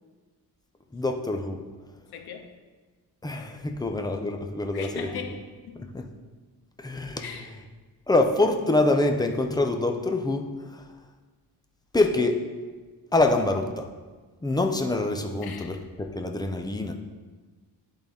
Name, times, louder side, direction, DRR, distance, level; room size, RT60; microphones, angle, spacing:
voice 1, 0.9-1.6 3.2-5.1 5.8-6.1 6.8-7.5 8.1-10.9 11.9-12.5 13.1-13.9 14.4-16.9, left 2 dB, 10° left, 4 dB, 0.4 m, -25 dB
voice 2, 2.1-2.5 4.7-5.9 7.2-7.5 15.4-15.8, left 7 dB, 70° left, 6 dB, 0.8 m, -39 dB
10.5 x 3.9 x 3.5 m, 1.4 s
cardioid pair, 140°, 40 cm